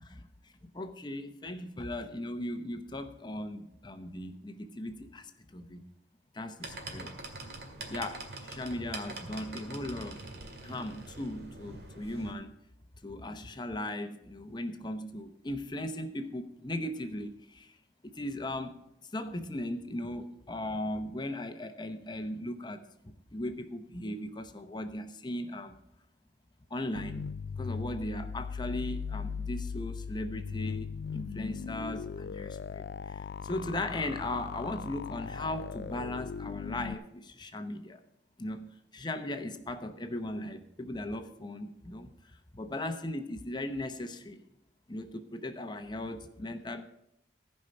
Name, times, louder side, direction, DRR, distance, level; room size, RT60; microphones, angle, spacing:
voice 1, 0.0-5.9 6.3-7.1 7.9-10.2 10.6-12.5 13.0-17.7 18.0-18.7 19.1-25.8 26.7-27.3 27.6-38.0 38.4-44.4 44.9-46.8, left 1 dB, 25° left, 8 dB, 0.8 m, -38 dB
sound 1, 6.6-12.3, right 2 dB, 60° right, 2.0 m, -44 dB
sound 2, 26.9-36.9, left 6 dB, 65° left, 0.4 m, -38 dB
15.0 x 5.5 x 6.6 m, 0.81 s
head